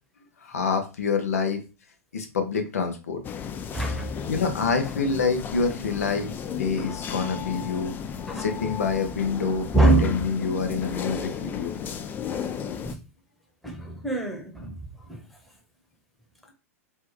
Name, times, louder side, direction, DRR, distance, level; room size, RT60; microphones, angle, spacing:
voice 1, 0.4-1.6 2.1-3.2 4.3-7.9 8.4-9.7 10.0-11.8, left 5 dB, 85° left, 0.7 m, -27 dB
sound 1, 3.2-12.9, left 7 dB, 25° left, 0.3 m, -34 dB
voice 2, 3.7-4.1 8.3-8.5 9.7-10.1 12.8-13.0 13.6-14.7 15.1-15.2, right 2 dB, ahead, 1.0 m, -23 dB
3.2 x 2.2 x 3.2 m
hypercardioid pair, 110°, 8 cm